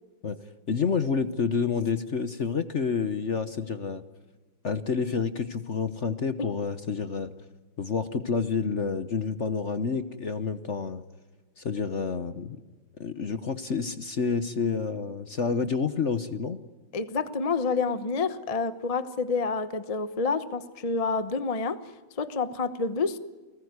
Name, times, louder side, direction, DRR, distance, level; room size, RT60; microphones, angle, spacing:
voice 1, 0.7-4.0 4.6-7.3 7.8-11.0 11.6-12.6 13.0-16.6, left 5 dB, 45° left, 11 dB, 1.1 m, -29 dB
voice 2, 16.9-21.9 22.2-23.2, left 4 dB, 25° left, 12 dB, 0.8 m, -28 dB
29.5 x 19.5 x 9.6 m, 1.3 s
omnidirectional pair, 2.1 m